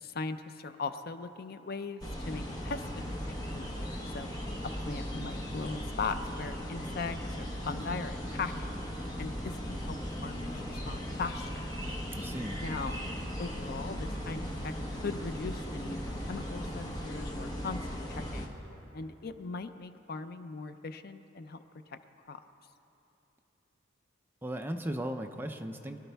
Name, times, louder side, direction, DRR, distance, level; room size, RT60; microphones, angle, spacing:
voice 1, 0.0-4.3 4.6-8.7 9.2-11.7 12.6-13.1 13.4-14.7 15.0-18.5 18.9-21.6 21.9-22.0 22.3-22.4, left 4 dB, 50° left, 10 dB, 0.5 m, -39 dB
sound 1, 2.0-18.5, equal, 20° left, 1.2 m, -37 dB
voice 2, 12.1-12.6 24.4-26.0, right 1 dB, 10° right, 5 dB, 0.5 m, -36 dB
23.5 x 11.5 x 3.4 m, 2.9 s
head